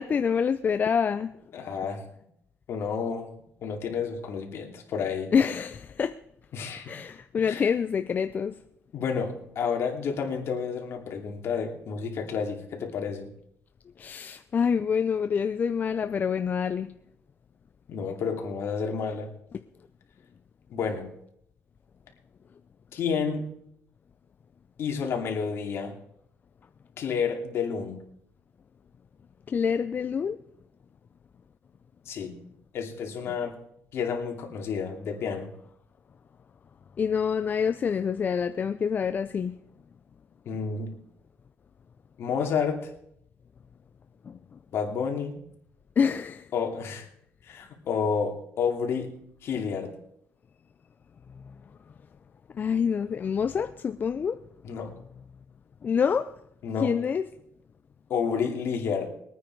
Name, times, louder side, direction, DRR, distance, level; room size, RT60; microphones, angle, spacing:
voice 1, 0.0-1.4 5.3-6.2 6.9-8.6 14.0-16.9 19.5-19.6 29.5-30.4 33.3-33.4 37.0-39.6 44.2-44.6 46.0-46.5 51.4-51.5 52.5-54.4 55.8-56.3 56.8-57.2, left 6 dB, 40° left, 0.5 m, -27 dB
voice 2, 1.5-2.0 2.7-3.3 3.6-5.3 6.5-7.0 7.4-7.7 8.9-13.3 17.9-19.3 20.7-21.1 22.9-23.5 24.8-26.0 27.0-28.0 32.1-32.3 32.7-33.6 33.9-35.5 40.5-41.0 42.2-42.9 44.7-45.4 46.5-47.0 47.4-49.1 49.4-49.9 54.6-55.0 56.6-57.0 58.1-59.1, left 6 dB, 60° left, 2.7 m, -30 dB
21.0 x 9.3 x 4.7 m
cardioid pair, 115°, 5 cm